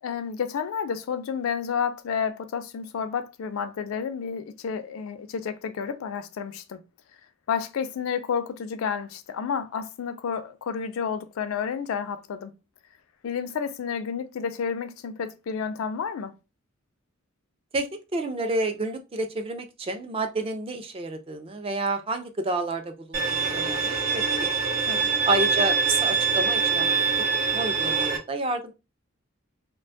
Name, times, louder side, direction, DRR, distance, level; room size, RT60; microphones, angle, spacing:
voice 1, 0.0-6.8 7.5-12.5 13.2-16.3 24.9-25.1, left 6 dB, 90° left, 0.4 m, -30 dB
voice 2, 17.7-24.6 25.2-27.0 27.5-28.7, right 2 dB, 25° right, 0.3 m, -29 dB
Bowed string instrument, 23.1-28.2, right 5 dB, 80° right, 0.6 m, -24 dB
2.4 x 2.2 x 2.5 m
head